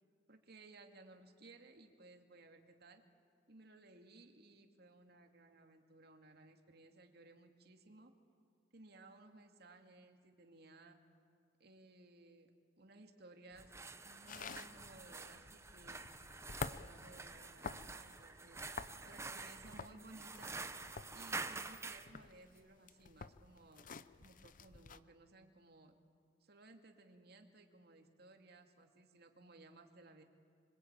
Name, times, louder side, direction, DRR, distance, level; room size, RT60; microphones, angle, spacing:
voice 1, 0.3-3.0 3.5-8.1 8.7-11.0 11.6-12.5 12.8-13.7 14.0-16.1 16.5-18.6 19.0-20.6 21.1-23.9 24.2-26.0 26.4-30.2, right 2 dB, 60° right, 4 dB, 2.3 m, -60 dB
sound 1, 13.5-22.1, right 3 dB, 15° right, 0.9 m, -48 dB
sound 2, 14.3-25.0, left 5 dB, 50° left, 0.7 m, -50 dB
25.5 x 25.0 x 8.9 m, 2.3 s
head